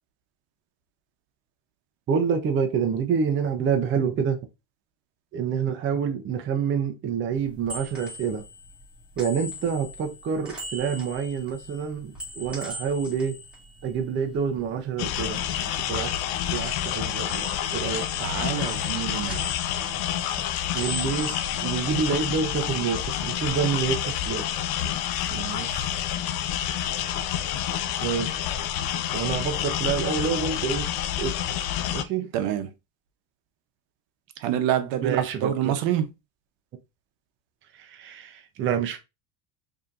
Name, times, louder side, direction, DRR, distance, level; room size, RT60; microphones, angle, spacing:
voice 1, 2.1-4.4 5.3-8.4 9.2-13.4 13.8-18.1 20.7-24.5 28.0-28.5 29.1-30.9 31.2-31.4 31.9-32.3 35.0-35.8 37.7-39.0, right 6 dB, 25° right, 0.5 m, -27 dB
sound 1, 7.4-14.7 15.0-16.4 16.6-22.6 23.0-24.3, left 1 dB, ahead, 1.8 m, -41 dB
sound 2, 15.0-32.0, left 10 dB, 50° left, 0.5 m, -28 dB
voice 2, 18.2-19.5 25.3-26.0 32.3-32.7 34.4-36.1, right 11 dB, 70° right, 0.8 m, -27 dB
4.8 x 2.8 x 2.5 m
cardioid pair, 145°, 46 cm